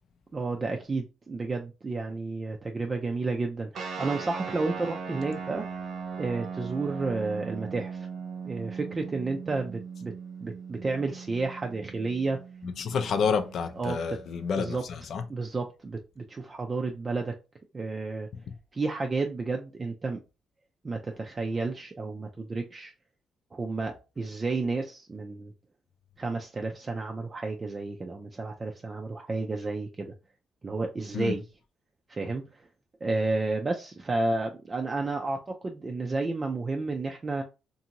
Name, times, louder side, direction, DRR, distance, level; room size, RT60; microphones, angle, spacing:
voice 1, 0.3-5.6 6.2-8.1 8.4-10.1 10.4-12.4 13.8-14.2 14.6-14.8 15.3-17.3 17.7-18.3 18.7-20.2 20.8-22.9 23.5-25.5 26.2-30.1 30.6-31.4 32.1-32.7 33.0-37.4, right 3 dB, 30° right, 0.4 m, -31 dB
sound 1, 3.7-14.7, right 6 dB, 65° right, 0.8 m, -39 dB
voice 2, 12.6-15.2 31.1-31.3, left 6 dB, 65° left, 0.5 m, -29 dB
2.6 x 2.6 x 2.8 m
cardioid pair, 90°, 0 cm